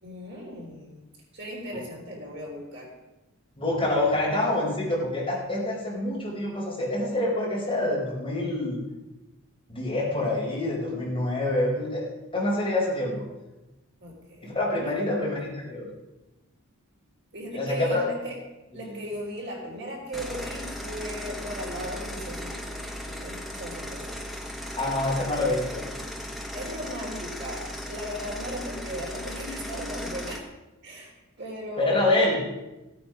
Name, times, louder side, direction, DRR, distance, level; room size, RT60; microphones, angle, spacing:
voice 1, 0.0-1.1 1.3-2.9 14.0-15.3 17.3-18.4 18.7-24.2 26.5-30.5 30.8-32.2, equal, 50° right, -2 dB, 3.6 m, -37 dB
voice 2, 3.6-8.8 9.7-12.0 12.3-13.2 14.4-15.9 17.5-18.0 18.8-19.0 24.8-25.8 31.8-32.4, left 1 dB, 25° left, -5 dB, 4.8 m, -26 dB
sound 1, 20.1-30.4, equal, ahead, 1.3 m, -37 dB
16.0 x 9.3 x 5.3 m, 1.0 s
head